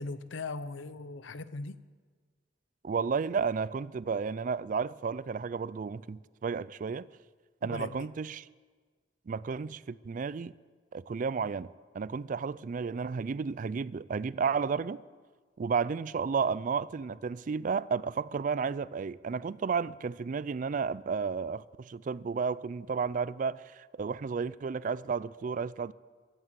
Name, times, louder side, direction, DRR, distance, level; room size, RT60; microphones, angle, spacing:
voice 1, 0.0-1.8 7.6-8.1, left 3 dB, 85° left, 0.7 m, -39 dB
voice 2, 2.8-7.1 7.6-8.5 9.3-10.5 10.9-11.7 11.9-15.0 15.6-25.9, right 5 dB, 45° right, 0.3 m, -32 dB
15.5 x 11.5 x 7.5 m
head